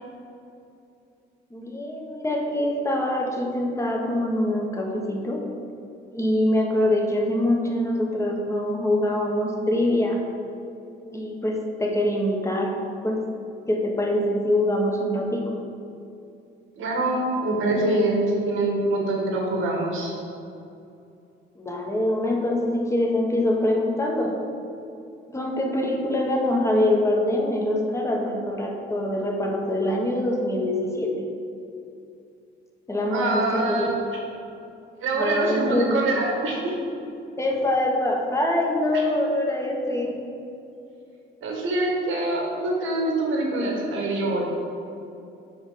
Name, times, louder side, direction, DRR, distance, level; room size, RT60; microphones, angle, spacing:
voice 1, 1.5-5.4 6.1-10.2 11.0-12.8 13.0-13.2 13.7-15.5 21.6-24.4 25.3-31.1 32.9-33.9 35.2-36.0 37.4-40.2, left 1 dB, 15° left, 0 dB, 1.3 m, -24 dB
voice 2, 16.8-20.1 33.1-33.9 35.0-36.7 38.9-39.0 41.4-44.4, right 2 dB, 80° right, -1 dB, 1.7 m, -24 dB
7.2 x 5.3 x 5.1 m, 2.6 s
cardioid pair, 90°, 20 cm